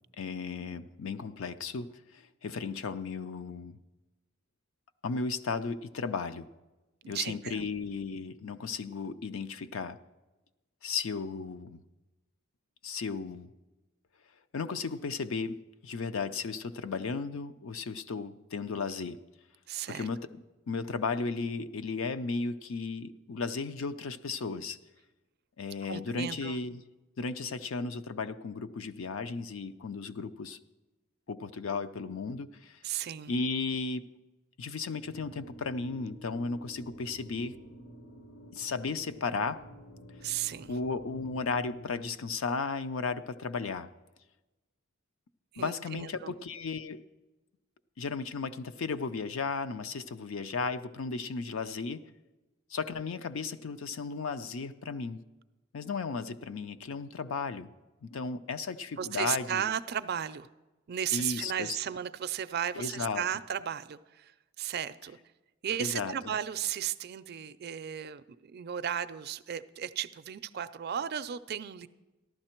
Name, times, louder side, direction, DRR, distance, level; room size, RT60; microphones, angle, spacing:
voice 1, 0.2-3.8 5.0-6.5 7.1-10.0 10.8-11.8 12.8-13.5 14.5-15.6 15.8-19.2 19.9-24.8 25.6-26.8 27.2-30.6 31.3-32.8 33.3-34.1 34.6-37.6 38.5-39.6 40.7-43.9 45.6-47.0 48.0-52.0 52.7-55.2 55.7-57.7 58.0-59.6 61.1-61.8 62.7-63.2 65.8-66.3, left 4 dB, 70° left, 12 dB, 0.5 m, -35 dB
voice 2, 7.0-7.7 19.7-20.1 25.9-26.6 32.8-33.3 40.2-40.7 45.5-46.3 59.0-60.5 60.9-64.3 64.6-65.2 65.6-71.9, right 9 dB, 50° right, 13 dB, 0.4 m, -35 dB
sound 1, 35.0-42.1, equal, 90° left, 1.7 m, -50 dB
14.5 x 11.5 x 4.4 m, 1.1 s
head